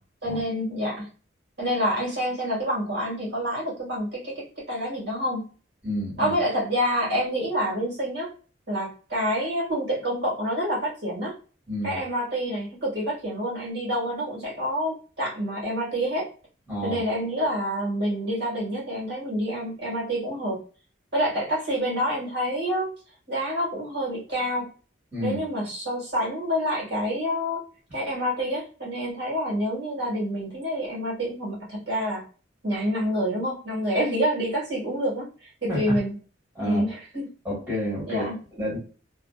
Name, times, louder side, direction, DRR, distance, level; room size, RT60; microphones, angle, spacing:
voice 1, 0.2-1.1 1.6-5.5 6.2-8.3 8.7-11.3 11.8-16.3 16.8-20.6 21.1-22.9 23.3-24.7 25.2-27.6 27.9-32.2 32.6-36.1 36.6-37.3 38.1-38.4, equal, 55° right, 1.4 m, -27 dB
voice 2, 5.8-6.3 11.7-12.0 16.7-17.0 25.1-25.4 35.7-36.0 36.5-36.8 37.4-38.2 38.5-38.8, equal, 10° right, 1.3 m, -29 dB
2.6 x 2.3 x 2.2 m
head